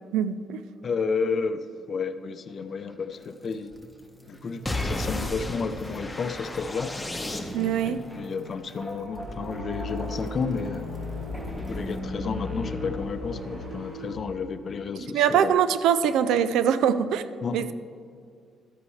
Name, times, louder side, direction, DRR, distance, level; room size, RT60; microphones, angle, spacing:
voice 1, 0.1-0.6 7.5-8.0 15.1-17.2 17.5-17.7, right 8 dB, 85° right, 13 dB, 0.4 m, -23 dB
voice 2, 0.8-3.7 4.3-6.9 7.8-10.9 11.5-15.5 17.4-17.7, left 5 dB, 50° left, 10 dB, 0.6 m, -31 dB
sound 1, 2.5-13.7, equal, 5° right, 1.3 m, -45 dB
sound 2, 4.7-7.9, left 1 dB, 15° left, 1.0 m, -33 dB
sound 3, 9.0-14.2, left 2 dB, 65° right, 2.7 m, -35 dB
13.0 x 8.3 x 3.2 m, 2.2 s
cardioid pair, 90°, 0 cm